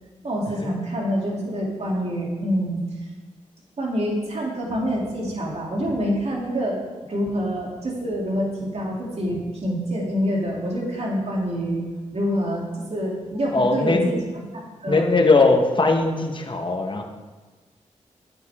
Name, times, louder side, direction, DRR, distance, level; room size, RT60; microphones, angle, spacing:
voice 1, 0.2-2.8 3.8-6.8 7.1-11.8 12.1-12.6 12.9-14.2 14.8-15.1, equal, 55° right, -2 dB, 3.0 m, -26 dB
voice 2, 13.5-14.5 14.9-17.0, left 3 dB, 40° left, 3 dB, 1.4 m, -20 dB
11.0 x 9.1 x 3.7 m, 1.3 s
cardioid pair, 55°, 13 cm